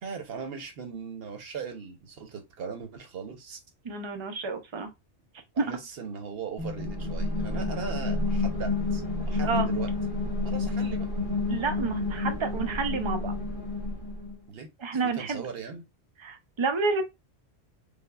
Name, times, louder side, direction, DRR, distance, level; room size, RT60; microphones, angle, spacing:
voice 1, 0.0-3.6 5.5-9.9 10.4-11.1 14.5-15.8, right 6 dB, 60° right, 1.0 m, -39 dB
voice 2, 3.8-4.9 5.6-5.7 9.4-9.7 11.5-13.3 14.8-15.4 16.2-17.0, right 4 dB, 40° right, 0.4 m, -29 dB
sound 1, 6.6-14.4, left 2 dB, 50° left, 1.6 m, -29 dB
5.2 x 2.1 x 2.3 m
omnidirectional pair, 1.2 m